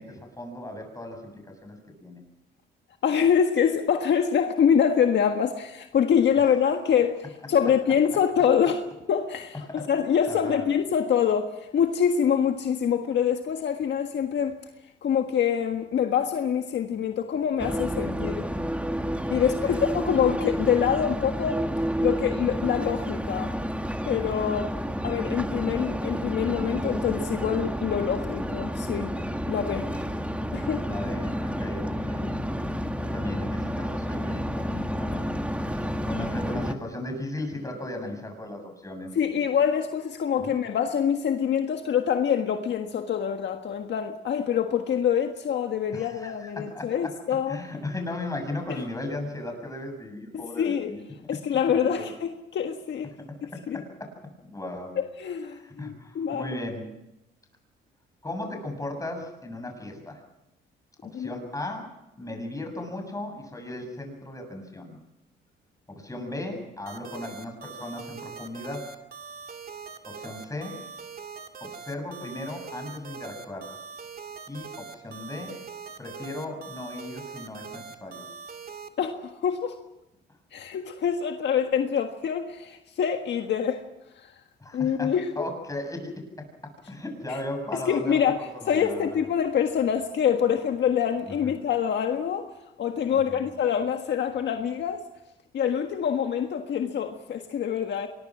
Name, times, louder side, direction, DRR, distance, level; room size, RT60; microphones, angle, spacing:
voice 1, 0.0-2.2 9.7-9.9 10.3-10.7 19.6-19.8 30.8-32.5 33.0-35.3 35.7-39.6 40.4-40.6 45.9-47.1 47.5-51.0 51.7-52.1 53.2-54.2 54.4-55.0 55.5-57.0 58.2-60.2 61.1-65.0 65.9-68.9 70.1-70.8 71.6-73.8 74.5-75.6 76.0-78.2 84.6-89.3 91.2-91.6 93.1-93.5, left 1 dB, 15° left, 7.4 m, -37 dB
voice 2, 3.0-14.6 15.0-18.5 19.3-21.7 22.0-23.5 24.0-24.7 25.0-29.1 29.5-29.9 30.5-30.8 39.1-47.6 50.3-50.9 51.3-53.1 53.7-53.8 55.2-56.5 61.1-61.3 79.0-79.8 80.5-83.8 84.2-84.3 84.7-85.5 87.7-88.4 88.7-92.5 92.8-95.0 95.5-98.1, left 8 dB, 65° left, 1.6 m, -25 dB
sound 1, 17.6-36.7, equal, 5° right, 1.7 m, -30 dB
sound 2, 66.9-78.9, right 6 dB, 50° right, 2.5 m, -42 dB
24.5 x 21.5 x 6.2 m
cardioid pair, 90°, 20 cm